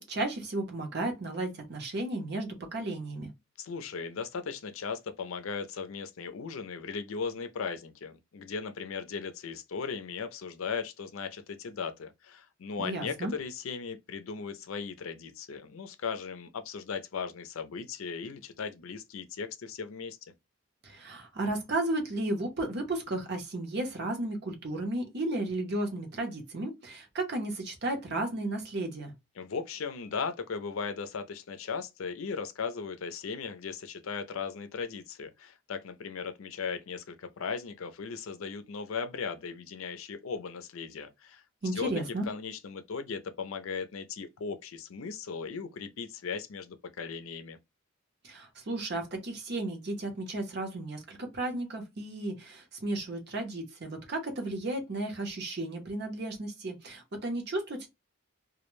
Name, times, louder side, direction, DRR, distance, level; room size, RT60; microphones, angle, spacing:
voice 1, 0.0-3.3 12.8-13.3 20.8-29.1 41.6-42.2 48.2-57.9, right 2 dB, 50° right, 0.8 m, -34 dB
voice 2, 3.6-20.3 29.4-41.4 41.7-41.9 42.3-47.6, left 5 dB, 80° left, 0.5 m, -37 dB
2.2 x 2.1 x 3.0 m
head